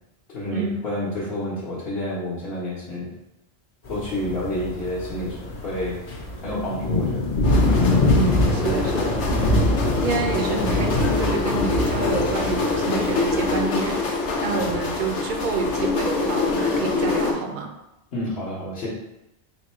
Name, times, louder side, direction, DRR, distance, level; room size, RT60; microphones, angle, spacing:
voice 1, 0.3-3.1 3.9-6.0 6.4-7.3 9.1-9.5 18.1-18.9, left 1 dB, 65° left, -8 dB, 1.2 m, -29 dB
sound 1, 3.8-13.6, left 1 dB, 40° left, 0.8 m, -24 dB
sound 2, 7.4-17.3, left 3 dB, 85° left, 1.0 m, -25 dB
voice 2, 8.1-17.7, right 4 dB, 55° right, 3 dB, 0.6 m, -28 dB
4.0 x 2.2 x 4.2 m, 0.90 s
omnidirectional pair, 1.1 m